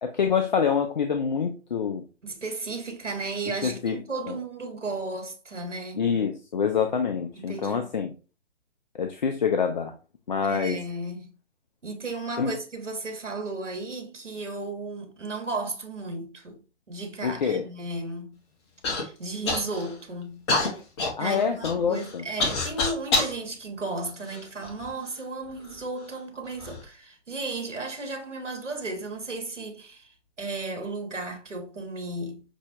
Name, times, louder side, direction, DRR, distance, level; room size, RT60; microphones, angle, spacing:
voice 1, 0.0-2.0 3.6-4.0 4.3-4.4 6.0-8.1 8.9-9.9 10.3-10.8 12.4-12.5 17.2-17.6 21.2-22.2, left 6 dB, 40° left, 0.4 m, -26 dB
voice 2, 2.2-6.1 7.3-7.8 10.4-11.3 11.8-16.6 16.9-18.4 18.9-20.4 21.2-32.4, right 2 dB, 85° right, 1.3 m, -34 dB
Human voice / Cough, 18.8-19.0 19.5-20.0 20.5-23.4 24.1-24.9 25.6-25.7 26.4-26.8, left 3 dB, 25° left, 0.8 m, -27 dB
6.1 x 2.1 x 2.8 m
figure-of-eight pair, 135°, 36 cm